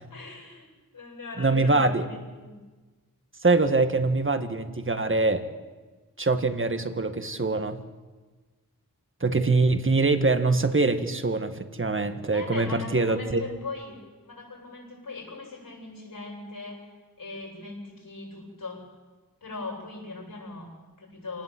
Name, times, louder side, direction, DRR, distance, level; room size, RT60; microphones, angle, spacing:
voice 1, 0.1-0.7 0.9-2.6 12.3-16.9 17.2-18.9 19.4-21.4, left 3 dB, 70° left, -2 dB, 8.0 m, -39 dB
voice 2, 1.4-2.0 3.4-5.4 6.2-7.8 9.2-13.4, right 3 dB, 35° right, 8 dB, 1.8 m, -24 dB
27.0 x 18.5 x 7.9 m, 1.3 s
wide cardioid pair, 65°, 35 cm